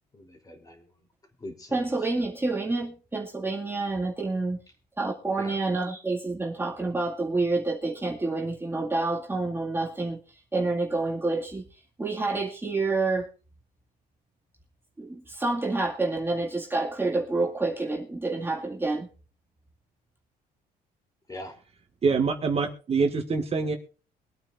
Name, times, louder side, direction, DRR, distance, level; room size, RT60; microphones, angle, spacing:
voice 1, 0.1-1.1 1.4-2.1 5.4-5.6 21.3-21.6, left 1 dB, 20° left, 4 dB, 3.4 m, -42 dB
voice 2, 1.7-4.6 5.0-10.2 10.5-11.6 12.0-13.3 15.0-19.1, right 3 dB, 15° right, -2 dB, 2.1 m, -28 dB
voice 3, 22.0-23.8, right 4 dB, 35° right, 5 dB, 1.9 m, -25 dB
23.5 x 9.0 x 2.6 m, 0.37 s
cardioid pair, 110°, 17 cm